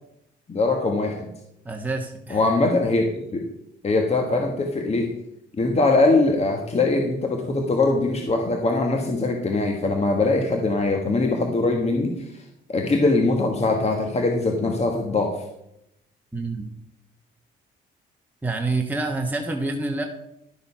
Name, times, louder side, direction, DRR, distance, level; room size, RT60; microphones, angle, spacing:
voice 1, 0.5-1.3 2.3-3.5 3.8-5.1 5.6-12.4 12.7-15.4, left 2 dB, 30° left, 3 dB, 1.5 m, -22 dB
voice 2, 1.6-2.5 16.3-16.7 18.4-20.0, right 3 dB, 10° right, 2 dB, 1.2 m, -27 dB
12.0 x 6.9 x 5.6 m, 0.82 s
cardioid pair, 90°, 20 cm